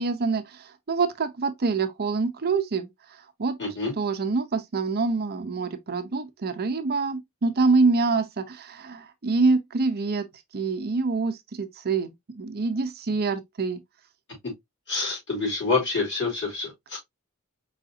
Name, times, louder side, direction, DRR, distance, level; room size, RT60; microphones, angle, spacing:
voice 1, 0.0-2.9 3.4-3.6 4.0-10.3 10.5-13.8, right 4 dB, 45° right, 0.6 m, -26 dB
voice 2, 3.6-3.9 14.9-17.0, left 3 dB, 55° left, 3.4 m, -27 dB
4.8 x 4.0 x 2.5 m
head